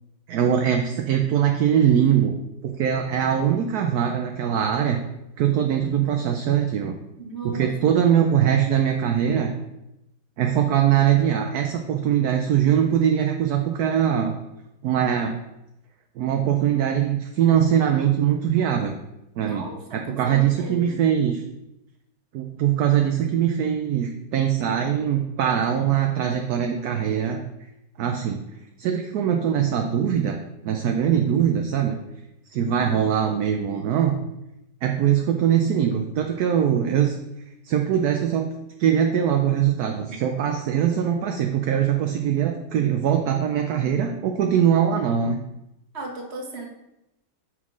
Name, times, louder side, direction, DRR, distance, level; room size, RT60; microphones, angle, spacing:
voice 1, 0.3-2.3 2.6-5.0 5.4-6.9 7.4-9.5 10.4-14.4 14.8-15.4 16.2-18.9 19.4-19.7 19.9-21.4 22.3-27.4 28.0-28.4 28.8-30.4 30.6-32.0 32.5-34.2 34.8-37.1 37.6-38.5 38.8-45.4, right 9 dB, 70° right, 4 dB, 1.0 m, -22 dB
voice 2, 7.2-7.7 19.4-21.0 32.8-33.1 40.1-40.2 45.9-46.7, right 3 dB, 40° right, 1 dB, 1.4 m, -37 dB
5.7 x 4.7 x 6.1 m, 0.90 s
omnidirectional pair, 1.9 m